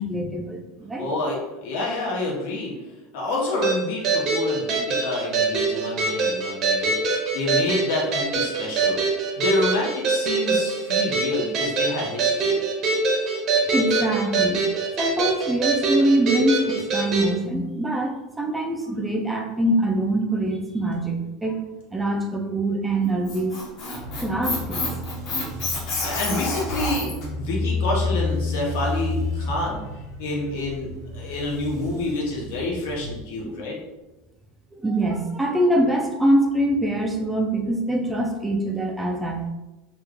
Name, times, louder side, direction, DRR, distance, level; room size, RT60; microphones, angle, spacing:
voice 1, 0.0-1.1 13.7-14.6 15.0-21.6 21.9-23.5 24.2-24.9 33.4-33.6 34.7-39.5, right 1 dB, 10° right, 2 dB, 0.3 m, -24 dB
voice 2, 1.0-2.7 3.1-7.0 7.3-9.0 9.4-12.6 26.0-29.8 30.2-33.8, left 2 dB, 80° left, -3 dB, 1.1 m, -28 dB
sound 1, 3.6-17.3, right 3 dB, 35° right, 0.7 m, -23 dB
Squeak, 23.0-27.2, left 3 dB, 45° left, 1.0 m, -29 dB
sound 2, 23.9-33.2, left 3 dB, 65° right, 0.8 m, -31 dB
2.9 x 2.3 x 3.5 m, 1.1 s
supercardioid pair, 160°, 0 cm